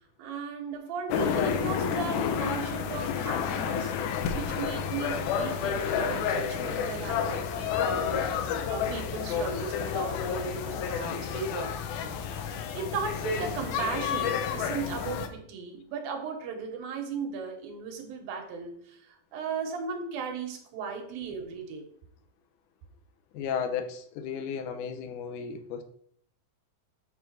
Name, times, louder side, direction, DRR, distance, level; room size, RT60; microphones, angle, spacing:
voice 1, 0.2-4.0 4.3-11.7 12.0-21.9, right 5 dB, 90° right, 3 dB, 3.1 m, -36 dB
sound 1, 1.1-15.3, left 7 dB, 90° left, 2.6 m, -30 dB
voice 2, 23.3-25.8, left 7 dB, 70° left, 7 dB, 2.2 m, -34 dB
6.1 x 5.5 x 6.4 m, 0.63 s
omnidirectional pair, 4.1 m